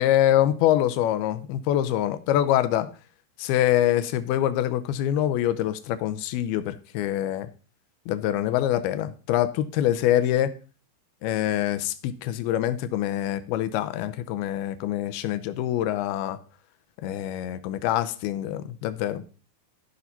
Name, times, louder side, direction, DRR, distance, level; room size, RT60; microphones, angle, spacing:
voice 1, 0.0-2.9 3.4-7.5 8.1-10.5 11.2-16.4 17.0-19.2, left 12 dB, 85° left, 12 dB, 2.6 m, -25 dB
13.5 x 5.8 x 4.0 m, 0.36 s
omnidirectional pair, 4.5 m